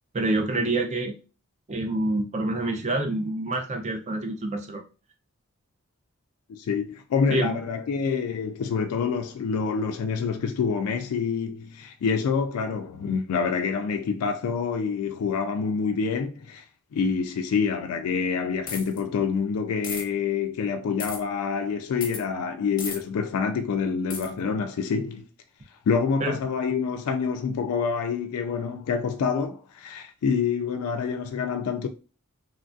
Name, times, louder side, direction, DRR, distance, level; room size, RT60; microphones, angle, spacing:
voice 1, 0.1-1.2 1.7-4.8 7.3-7.6 26.2-26.4, right 2 dB, 30° right, 0.5 m, -27 dB
voice 2, 6.5-16.6 16.9-25.3 25.9-31.9, left 5 dB, 80° left, 0.3 m, -27 dB
sound 1, 18.7-19.0 19.8-20.0 21.0-21.2 22.0-22.2 22.8-23.0 24.1-24.3, left 4 dB, 40° left, 0.6 m, -34 dB
3.1 x 2.3 x 2.5 m
head